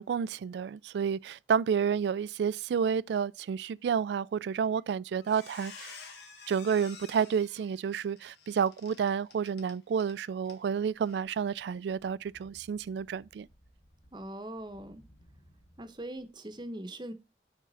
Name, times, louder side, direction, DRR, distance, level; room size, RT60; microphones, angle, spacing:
voice 1, 0.0-5.9 6.5-13.5, right 7 dB, 75° right, 0.3 m, -30 dB
Squeak, 4.6-4.9 5.2-10.2 10.5-10.6 11.0-11.2, left 5 dB, 75° left, 1.9 m, -50 dB
sound 1, 10.9-16.3, equal, 55° left, 2.3 m, -62 dB
voice 2, 14.1-15.0 15.8-17.1, right 1 dB, 25° right, 0.8 m, -41 dB
8.1 x 3.7 x 5.5 m
head